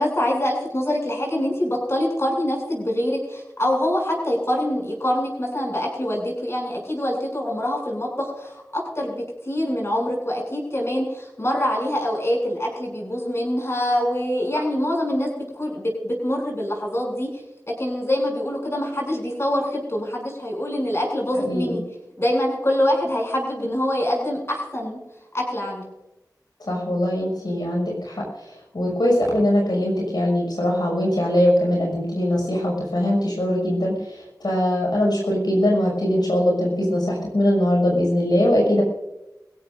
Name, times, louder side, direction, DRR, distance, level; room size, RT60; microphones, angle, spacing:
voice 1, 0.0-17.3 17.8-21.8 22.2-25.0 25.3-25.8, left 1 dB, 35° left, -1 dB, 7.3 m, -25 dB
voice 2, 21.4-21.8 26.7-38.8, left 1 dB, 75° left, -2 dB, 6.2 m, -21 dB
24.5 x 16.5 x 2.6 m, 0.96 s
wide cardioid pair, 55°, 7 cm